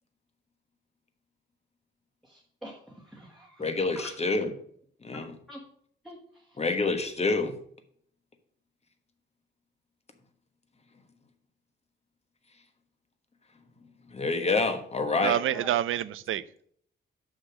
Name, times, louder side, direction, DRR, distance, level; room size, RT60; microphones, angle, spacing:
voice 1, 2.2-4.1 5.5-5.6 6.0-6.6 15.5-15.7, equal, ahead, 1.6 m, -46 dB
voice 2, 3.6-4.5 5.0-5.3 6.6-7.6 14.1-15.4, left 3 dB, 30° left, 1.3 m, -27 dB
voice 3, 15.2-16.6, right 11 dB, 80° right, 0.5 m, -28 dB
6.3 x 6.0 x 6.2 m
cardioid pair, 95°, 20 cm